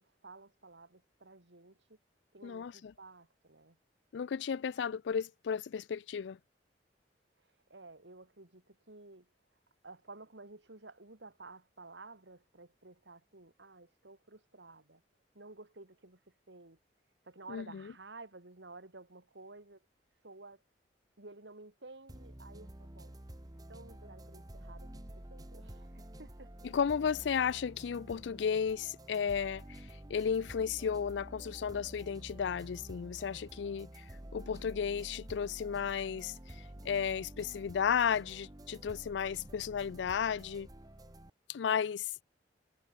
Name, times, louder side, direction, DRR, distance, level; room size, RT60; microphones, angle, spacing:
voice 1, 0.0-2.0 2.3-3.8 7.4-9.3 9.8-15.0 15.3-16.2 16.5-16.8 17.2-19.8 20.2-20.6 21.2-23.2 23.7-26.7, right 3 dB, 85° right, 2.6 m, -53 dB
voice 2, 2.4-2.9 4.1-6.4 17.5-17.8 26.7-34.0 34.3-36.6 36.8-40.7 41.5-42.2, left 7 dB, 80° left, 0.4 m, -34 dB
sound 1, 22.1-41.3, right 1 dB, 20° right, 1.4 m, -50 dB
head